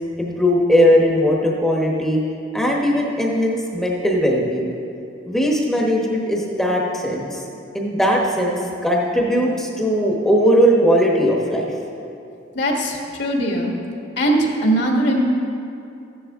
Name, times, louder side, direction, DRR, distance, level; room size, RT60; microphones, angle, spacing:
voice 1, 0.2-2.2 2.5-4.7 5.3-7.4 7.7-11.7, equal, ahead, -2 dB, 1.0 m, -19 dB
voice 2, 12.5-13.7 14.2-15.2, right 1 dB, 65° left, 0 dB, 1.5 m, -20 dB
14.0 x 10.0 x 3.6 m, 2.6 s
head